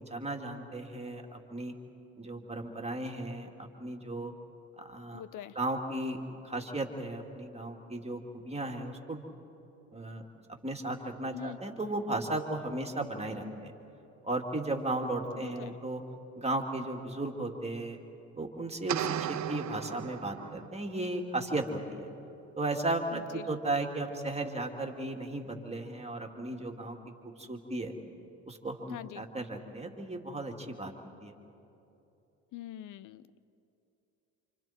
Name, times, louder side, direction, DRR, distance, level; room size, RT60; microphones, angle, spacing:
voice 1, 0.0-1.7 2.2-4.3 4.8-5.2 5.5-6.2 6.4-9.2 9.9-10.2 10.6-13.7 14.2-16.0 16.4-18.0 18.4-22.1 22.6-27.0 27.2-27.9 28.5-30.9 31.2-31.3, right 2 dB, 15° right, 2 dB, 2.8 m, -35 dB
voice 2, 5.1-5.6 11.3-11.6 15.4-15.8 23.1-23.5 28.9-29.3 32.5-33.4, left 12 dB, 60° left, 16 dB, 0.9 m, -44 dB
sound 1, 18.9-20.8, right 11 dB, 50° right, 0.9 m, -35 dB
29.5 x 27.0 x 4.6 m, 2.9 s
supercardioid pair, 70°, 36 cm